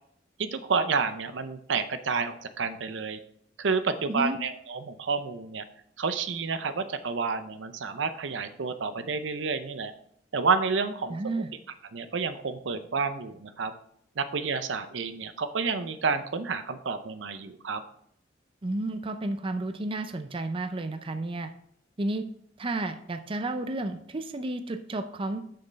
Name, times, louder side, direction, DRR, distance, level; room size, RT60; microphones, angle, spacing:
voice 1, 0.4-3.2 3.6-5.6 6.0-9.9 10.3-11.2 11.9-13.7 14.2-17.8, right 5 dB, 75° right, 10 dB, 0.6 m, -29 dB
voice 2, 4.1-4.4 11.1-11.5 18.6-21.5 22.0-22.2 22.6-25.4, right 2 dB, 30° right, 8 dB, 0.5 m, -32 dB
6.6 x 6.5 x 4.1 m, 0.67 s
head